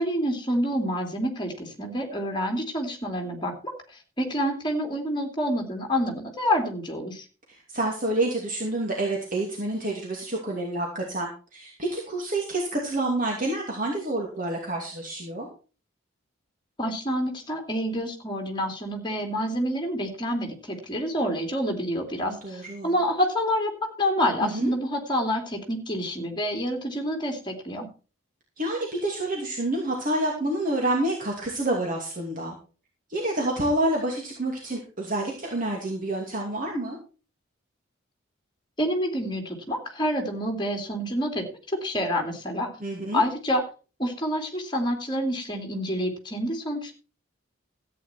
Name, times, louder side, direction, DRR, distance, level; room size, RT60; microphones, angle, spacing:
voice 1, 0.0-7.3 16.8-23.7 24.0-27.9 38.8-41.4 41.7-42.7 43.1-43.6 44.0-46.9, equal, 20° left, 4 dB, 2.7 m, -28 dB
voice 2, 7.5-15.5 22.2-22.9 24.4-24.7 28.6-32.6 33.1-37.0 42.8-43.2, right 1 dB, 40° right, -1 dB, 2.6 m, -28 dB
13.5 x 9.3 x 4.4 m, 0.35 s
head